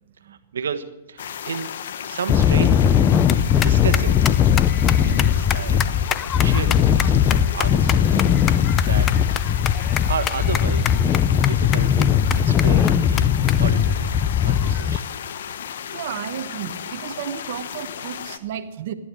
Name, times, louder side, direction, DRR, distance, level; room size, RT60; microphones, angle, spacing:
voice 1, 0.2-1.7 2.0-3.1 3.6-8.2 8.8-9.1 9.3-9.6 10.0-14.1 14.4-15.1, right 7 dB, 90° right, 9 dB, 1.3 m, -32 dB
sound 1, 1.2-18.4, left 8 dB, 70° left, 1.1 m, -34 dB
sound 2, 2.3-15.0, left 9 dB, 20° left, 0.6 m, -19 dB
voice 2, 15.9-18.9, right 10 dB, 55° right, 7 dB, 1.1 m, -33 dB
15.0 x 11.5 x 7.6 m, 1.0 s
hypercardioid pair, 150°, 0 cm